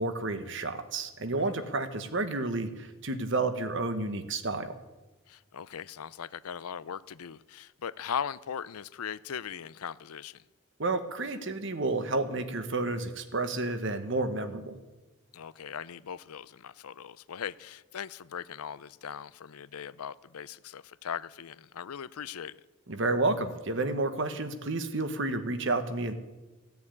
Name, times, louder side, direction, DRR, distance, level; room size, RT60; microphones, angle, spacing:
voice 1, 0.0-4.7 10.8-14.8 22.9-26.1, right 2 dB, 55° right, 9 dB, 1.2 m, -30 dB
voice 2, 5.3-10.4 15.3-22.6, left 8 dB, 90° left, 18 dB, 0.5 m, -39 dB
16.0 x 7.1 x 9.8 m, 1.1 s
head